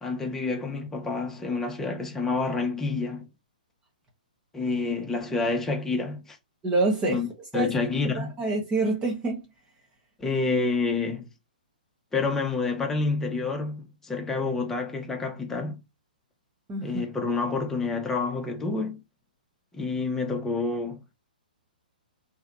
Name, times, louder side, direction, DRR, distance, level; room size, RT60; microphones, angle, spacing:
voice 1, 0.0-3.3 4.5-6.4 7.1-7.3 7.5-8.3 10.2-11.3 12.1-15.8 16.8-19.0 19.7-21.0, left 3 dB, 10° left, 0.9 m, -28 dB
voice 2, 6.6-7.2 7.5-7.7 8.1-9.5 16.7-17.0, right 2 dB, 20° right, 1.1 m, -26 dB
3.2 x 2.9 x 2.5 m
hypercardioid pair, 130°, 5 cm